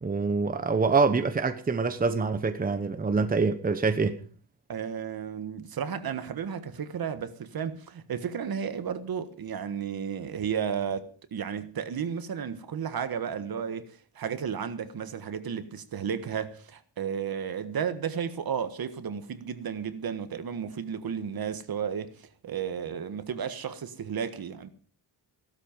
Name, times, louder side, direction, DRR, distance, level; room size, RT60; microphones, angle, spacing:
voice 1, 0.0-4.2, right 4 dB, 20° right, 1.0 m, -25 dB
voice 2, 4.7-24.7, right 7 dB, 55° right, 1.5 m, -33 dB
16.0 x 12.5 x 5.3 m
wide cardioid pair, 175°, 43 cm